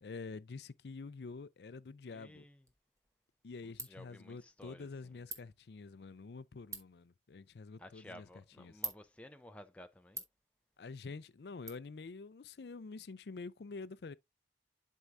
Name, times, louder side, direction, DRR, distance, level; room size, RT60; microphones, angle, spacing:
voice 1, 0.0-2.4 3.4-8.3 8.6-8.7 10.8-14.2, left 4 dB, 70° left, 0.5 m, -47 dB
voice 2, 2.1-2.7 3.6-5.1 7.8-10.2, left 1 dB, 5° left, 0.5 m, -55 dB
Ratchet pawl, 2.6-11.7, right 3 dB, 15° right, 1.1 m, -51 dB
11.5 x 4.6 x 2.5 m
head